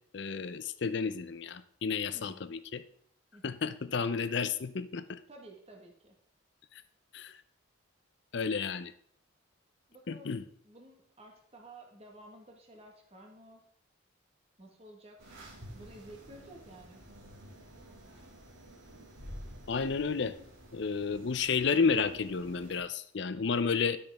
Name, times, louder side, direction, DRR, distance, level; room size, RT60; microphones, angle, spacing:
voice 1, 0.1-2.8 3.4-5.2 7.1-7.3 8.3-8.9 10.1-10.4 19.7-20.4 20.7-24.0, left 5 dB, 55° left, 14 dB, 0.5 m, -31 dB
voice 2, 2.1-2.4 3.3-3.5 5.3-6.1 9.9-10.4 10.6-13.6 14.6-15.3 15.7-17.0, right 1 dB, 30° right, 1 dB, 1.4 m, -53 dB
sound 1, 15.2-22.8, equal, 75° right, 2.5 m, -50 dB
12.0 x 6.1 x 3.5 m, 0.64 s
head